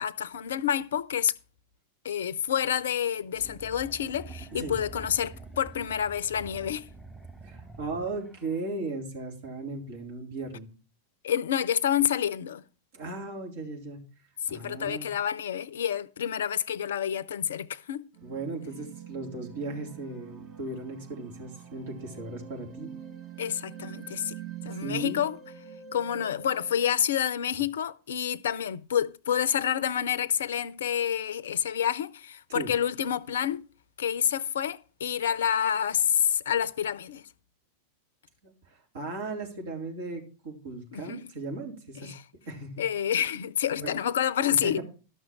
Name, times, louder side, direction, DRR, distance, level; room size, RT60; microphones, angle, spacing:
voice 1, 0.0-1.3 2.0-6.9 11.2-12.6 14.5-18.1 23.4-24.3 24.6-25.4 25.9-33.7 34.0-37.2 40.9-41.3 42.0-42.2 42.8-44.8, left 9 dB, 60° left, 0.6 m, -28 dB
sound 1, 3.3-8.6, right 3 dB, ahead, 0.8 m, -46 dB
voice 2, 7.4-10.7 12.9-14.0 14.5-15.1 18.2-22.9 24.7-25.2 32.5-32.7 38.4-42.1 42.5-42.7 43.8-44.0 44.6-44.8, right 3 dB, 55° right, 3.5 m, -37 dB
sound 2, 18.1-26.8, right 8 dB, 30° right, 1.4 m, -45 dB
12.5 x 6.4 x 6.0 m
figure-of-eight pair, 90°, 0 cm